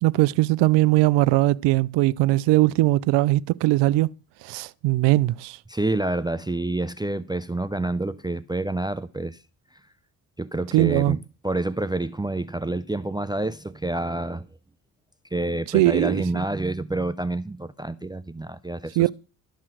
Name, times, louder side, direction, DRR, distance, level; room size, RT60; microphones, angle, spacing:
voice 1, 0.0-4.1 4.4-5.6 10.7-11.2 15.7-16.2 19.0-19.1, right 18 dB, 60° right, 0.5 m, -20 dB
voice 2, 5.7-9.4 10.4-11.2 11.4-14.5 15.3-19.1, right 2 dB, 10° right, 0.6 m, -28 dB
12.5 x 5.6 x 6.2 m
hypercardioid pair, 45°, 48 cm